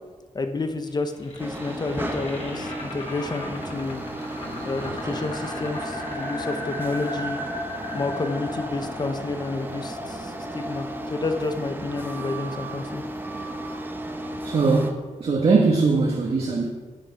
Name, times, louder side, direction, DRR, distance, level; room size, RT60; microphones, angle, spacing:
voice 1, 0.3-4.0 4.6-7.4 7.9-13.0, left 3 dB, 30° left, 7 dB, 0.9 m, -30 dB
sound 1, 0.9-12.9, left 1 dB, 50° left, 3.6 m, -36 dB
sound 2, 1.4-14.9, right 1 dB, 15° right, 1.1 m, -34 dB
voice 2, 14.4-16.7, right 4 dB, 50° right, -1 dB, 1.4 m, -21 dB
13.0 x 9.0 x 4.7 m, 1.3 s
wide cardioid pair, 150°, 13 cm